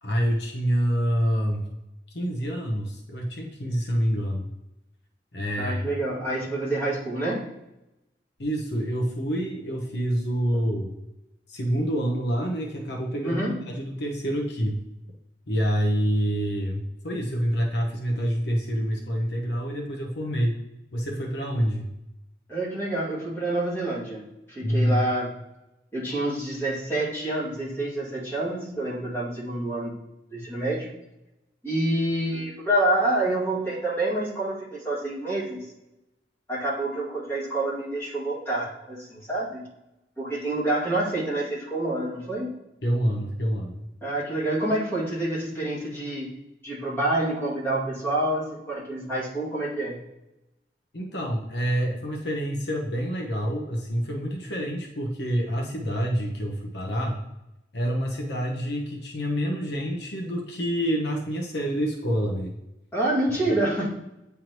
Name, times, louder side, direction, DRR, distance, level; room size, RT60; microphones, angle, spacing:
voice 1, 0.0-1.7 2.1-4.4 5.3-5.9 8.4-10.9 11.5-14.8 15.5-20.6 20.9-21.9 24.6-25.1 42.8-43.9 50.9-57.2 57.7-62.6 63.5-63.6, equal, 70° left, 0 dB, 1.0 m, -27 dB
voice 2, 5.6-7.5 13.2-13.6 22.5-25.3 25.9-29.9 30.3-30.9 31.6-35.7 36.5-39.6 40.2-42.5 44.0-46.3 46.6-50.0 62.9-63.9, right 1 dB, 15° left, -8 dB, 2.2 m, -27 dB
9.2 x 3.5 x 3.0 m, 0.93 s
head